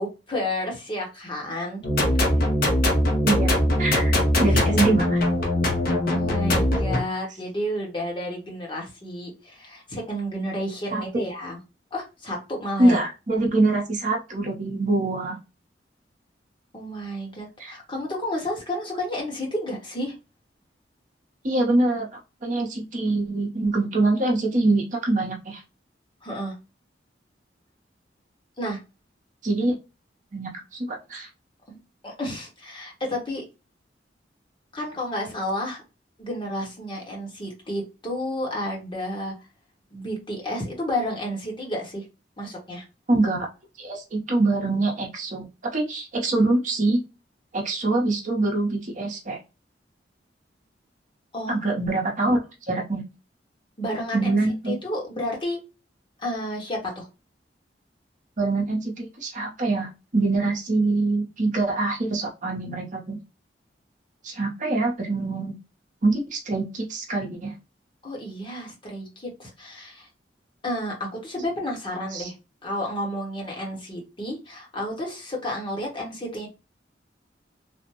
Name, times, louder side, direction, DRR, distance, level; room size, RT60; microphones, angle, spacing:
voice 1, 0.0-1.8 2.4-2.5 4.4-4.8 6.1-11.6 11.9-13.0 16.7-20.1 26.2-26.5 28.6-28.8 31.7-31.8 32.0-33.4 34.7-35.8 36.2-39.3 39.9-42.1 42.4-42.8 51.3-51.6 53.8-54.3 54.7-55.6 56.2-57.1 68.0-70.1 70.6-72.3 72.6-76.5, left 1 dB, 30° left, 1.1 m, -31 dB
sound 1, 1.8-7.0, left 1 dB, 55° left, 0.9 m, -21 dB
voice 2, 3.2-5.2 10.9-11.2 12.8-15.4 17.6-17.7 21.4-22.1 22.4-25.6 29.4-29.7 30.3-31.3 43.1-43.5 43.8-45.5 45.7-47.0 47.5-49.4 51.5-52.4 52.7-53.0 54.1-54.7 58.4-63.2 64.2-65.5 66.0-67.5 72.1-72.3, right 2 dB, 45° right, 0.8 m, -24 dB
3.4 x 2.1 x 2.8 m
head